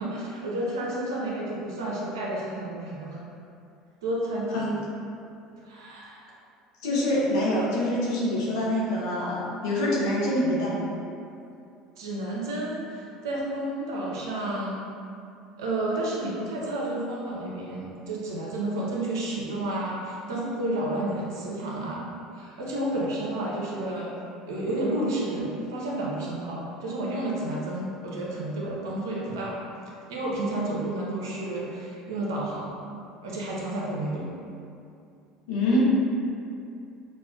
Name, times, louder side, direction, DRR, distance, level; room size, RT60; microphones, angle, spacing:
voice 1, 0.0-3.2 4.0-4.6 5.7-6.3 12.0-14.9 15.6-24.1 24.4-29.6 30.1-32.7 33.2-34.3, right 1 dB, 85° right, -4 dB, 0.7 m, -31 dB
voice 2, 6.8-10.9 35.5-35.8, left 1 dB, 80° left, -6 dB, 0.9 m, -25 dB
5.4 x 2.5 x 2.4 m, 2.6 s
hypercardioid pair, 80°, 2 cm